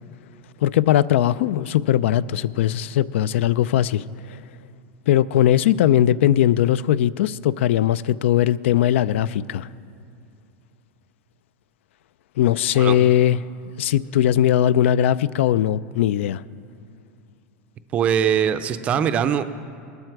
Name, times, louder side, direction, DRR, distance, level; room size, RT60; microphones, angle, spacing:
voice 1, 0.6-4.0 4.3-4.4 5.1-9.7 12.4-13.4 13.8-16.4, left 11 dB, 90° left, 19 dB, 0.4 m, -19 dB
voice 2, 12.7-13.1 17.9-19.4, right 8 dB, 20° right, 11 dB, 0.4 m, -21 dB
20.0 x 12.5 x 4.7 m, 2.5 s
supercardioid pair, 180°, 6 cm